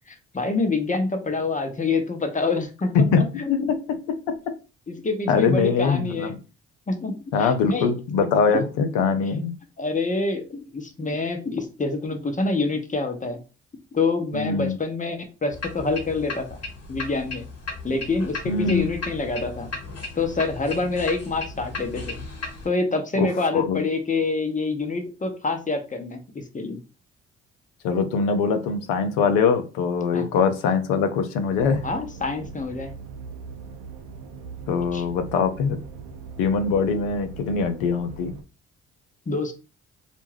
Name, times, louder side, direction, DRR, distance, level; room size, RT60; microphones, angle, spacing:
voice 1, 0.1-2.9 3.4-3.7 4.9-6.4 6.9-7.9 8.5-8.6 9.8-13.4 13.9-16.6 16.9-17.4 17.8-19.7 20.2-22.2 22.6-26.8 30.1-30.3 31.8-32.9 34.9-35.1 39.3-39.5, left 3 dB, 25° left, 6 dB, 0.8 m, -26 dB
voice 2, 5.3-6.4 7.3-9.5 14.3-14.8 18.5-18.8 23.2-23.3 23.5-23.8 27.8-31.8 34.7-35.8 36.4-38.3, left 5 dB, 80° left, 8 dB, 0.5 m, -22 dB
sound 1, 15.5-22.7, left 3 dB, 50° left, 1.2 m, -36 dB
sound 2, 31.5-38.4, right 5 dB, 80° right, 0.5 m, -40 dB
2.4 x 2.2 x 3.3 m, 0.32 s
hypercardioid pair, 45°, 31 cm